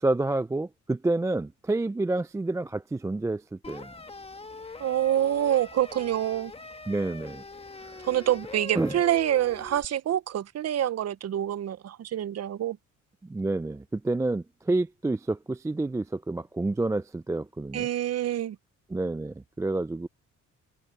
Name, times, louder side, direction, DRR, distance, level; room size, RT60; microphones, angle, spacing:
voice 1, 0.0-3.9 6.9-7.4 7.8-8.1 8.7-9.0 13.2-17.9 18.9-20.1, right 2 dB, 10° right, 0.4 m, -29 dB
sound 1, 3.6-9.9, left 3 dB, 20° left, 1.5 m, -42 dB
voice 2, 4.8-6.5 8.0-12.8 17.7-18.6, right 11 dB, 55° right, 0.8 m, -26 dB
cardioid pair, 90°, 30 cm